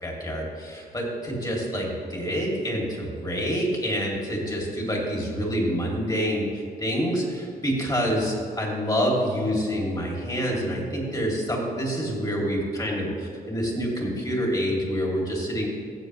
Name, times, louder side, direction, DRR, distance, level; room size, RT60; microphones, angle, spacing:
voice 1, 0.0-6.5 6.8-15.7, equal, 25° left, -2 dB, 2.9 m, -27 dB
15.0 x 7.1 x 3.3 m, 2.2 s
cardioid pair, 75°, 16 cm